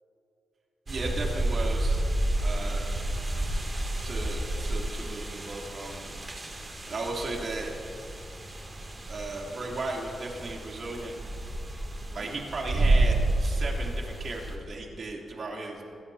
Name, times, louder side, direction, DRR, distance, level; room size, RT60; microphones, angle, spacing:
sound 1, 0.9-14.6, right 1 dB, 30° right, 2.7 m, -30 dB
voice 1, 0.9-2.0 2.4-2.9 4.0-6.1 6.6-7.7 9.1-11.1 12.1-15.8, right 2 dB, 50° right, -1 dB, 3.2 m, -36 dB
27.0 x 17.0 x 2.9 m, 2.7 s
cardioid pair, 115°, 0 cm